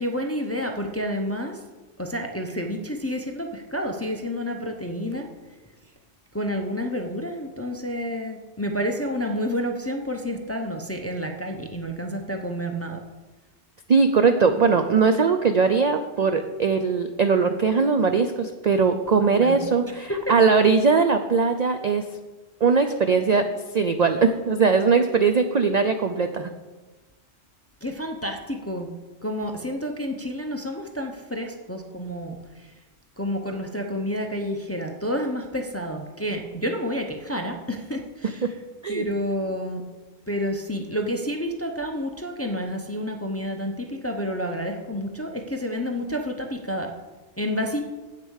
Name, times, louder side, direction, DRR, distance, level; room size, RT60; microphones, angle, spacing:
voice 1, 0.0-1.6 2.0-5.3 6.3-13.0 19.2-19.6 20.0-20.2 27.8-28.9 29.2-32.7 33.2-38.5 38.9-39.8 40.3-46.9 47.4-47.8, equal, 15° left, 3 dB, 0.5 m, -29 dB
voice 2, 13.9-22.0 22.6-23.4 23.7-26.5 38.4-38.5 38.8-39.0, right 5 dB, 65° right, 7 dB, 0.4 m, -20 dB
8.4 x 6.7 x 6.4 m, 1.2 s
omnidirectional pair, 1.3 m